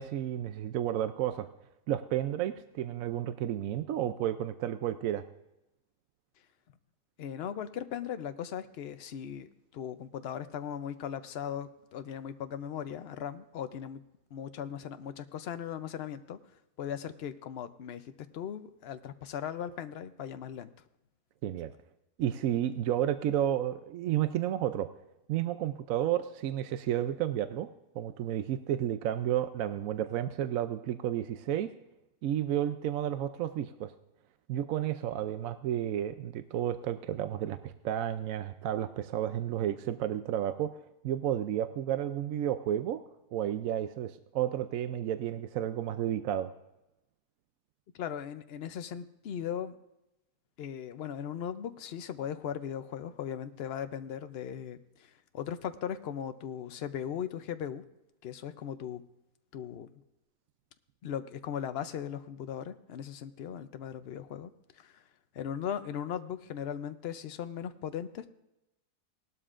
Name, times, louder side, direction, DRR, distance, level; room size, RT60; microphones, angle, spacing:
voice 1, 0.0-1.5 1.9-5.2 21.4-21.7 22.2-24.9 25.3-27.7 28.0-31.7 32.2-33.9 34.5-40.7 41.0-43.0 43.3-46.5, right 11 dB, 70° right, 10 dB, 0.9 m, -31 dB
voice 2, 7.2-9.5 9.7-14.0 14.3-16.4 16.8-18.0 18.3-20.7 47.9-49.8 50.6-57.8 58.2-59.0 59.5-59.9 61.0-65.0 65.3-68.3, left 9 dB, 65° left, 10 dB, 0.6 m, -38 dB
18.5 x 12.5 x 2.5 m, 0.92 s
omnidirectional pair, 1.7 m